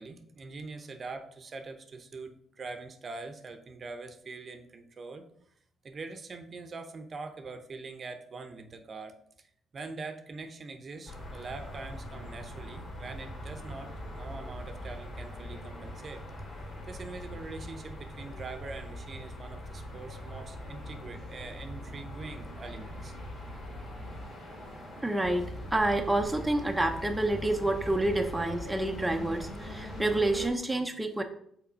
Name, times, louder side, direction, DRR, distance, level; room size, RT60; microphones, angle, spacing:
voice 1, 0.0-5.3 5.8-16.2 16.9-23.1, right 3 dB, 45° right, 7 dB, 0.8 m, -43 dB
sound 1, 11.1-30.5, equal, 55° left, 2.6 m, -42 dB
voice 2, 25.0-31.2, right 1 dB, 10° right, 3 dB, 0.7 m, -28 dB
5.8 x 3.7 x 5.0 m, 0.67 s
cardioid pair, 90°, 0 cm